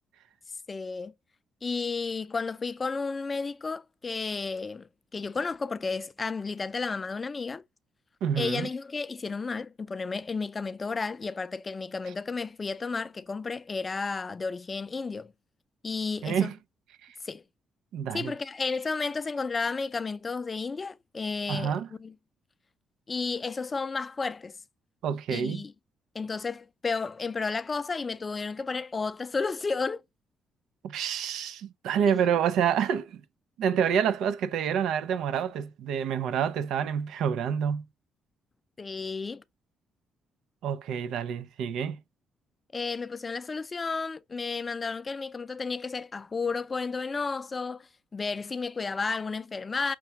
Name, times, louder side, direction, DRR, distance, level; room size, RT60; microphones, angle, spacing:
voice 1, 0.7-1.1 1.6-7.6 8.4-15.3 15.8-16.5 17.2-17.4 18.1-22.1 23.1-24.5 25.3-25.7 26.1-30.0 32.1-32.3 38.8-39.4 42.7-49.9, left 4 dB, 30° left, 0.4 m, -32 dB
voice 2, 8.2-8.7 16.2-16.6 17.9-18.3 21.5-21.9 25.0-25.6 30.8-33.2 33.6-37.8 40.6-42.0, right 8 dB, 80° right, 0.5 m, -28 dB
5.9 x 2.2 x 2.8 m
cardioid pair, 90°, 0 cm